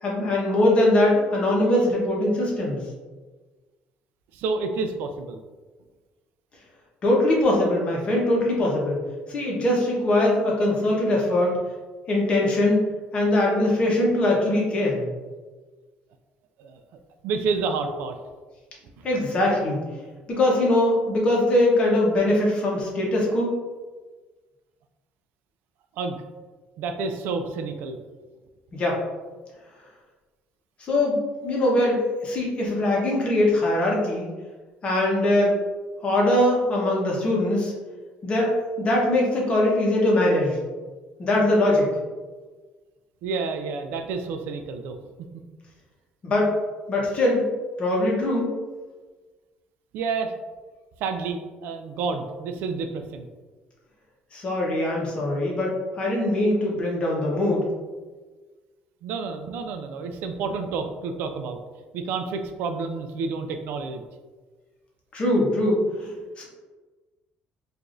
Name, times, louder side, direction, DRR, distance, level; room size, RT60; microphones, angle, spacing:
voice 1, 0.0-2.8 7.0-9.0 9.3-11.5 12.1-12.8 13.1-15.1 19.0-19.8 20.3-23.5 28.7-29.0 30.8-34.3 34.8-35.5 36.0-37.7 38.2-40.6 41.2-41.9 46.2-46.5 46.9-47.5 47.8-48.5 54.3-57.7 65.1-66.1 66.4-66.5, left 1 dB, 35° left, -3 dB, 1.0 m, -22 dB
voice 2, 4.3-5.4 16.6-16.8 17.2-18.2 19.0-19.1 26.0-26.2 26.8-28.0 43.2-45.0 49.9-50.3 51.0-53.3 59.0-61.6 61.9-64.0, right 4 dB, 75° right, 7 dB, 0.4 m, -29 dB
4.7 x 2.5 x 2.5 m, 1.3 s
cardioid pair, 135°, 3 cm